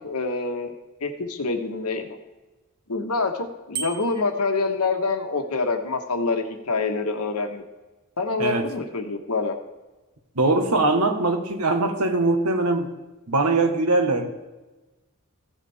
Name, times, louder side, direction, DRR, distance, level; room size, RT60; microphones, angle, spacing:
voice 1, 0.0-0.7 1.0-2.2 2.9-7.6 8.2-9.5, left 3 dB, 85° left, 5 dB, 1.3 m, -26 dB
Bicycle bell, 3.7-4.4, right 6 dB, 45° right, 1.5 m, -33 dB
voice 2, 10.3-12.9 13.3-14.3, right 2 dB, 90° right, 6 dB, 1.4 m, -21 dB
15.5 x 7.4 x 3.5 m, 1.1 s
head